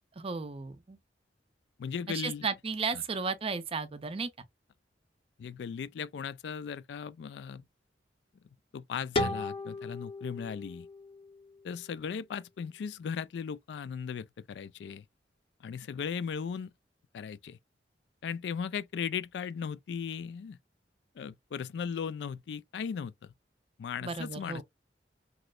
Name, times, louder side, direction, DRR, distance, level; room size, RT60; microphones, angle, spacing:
voice 1, 0.2-1.0 2.1-4.3 24.0-24.6, right 4 dB, 35° right, 0.5 m, -34 dB
voice 2, 1.8-2.5 2.9-3.0 5.4-7.7 8.7-10.9 11.6-15.0 15.6-16.7 17.1-17.6 18.2-20.6 21.2-23.3 23.8-24.6, left 7 dB, 70° left, 0.3 m, -37 dB
sound 1, 9.2-12.0, left 2 dB, 30° left, 0.6 m, -36 dB
3.1 x 3.0 x 2.3 m
head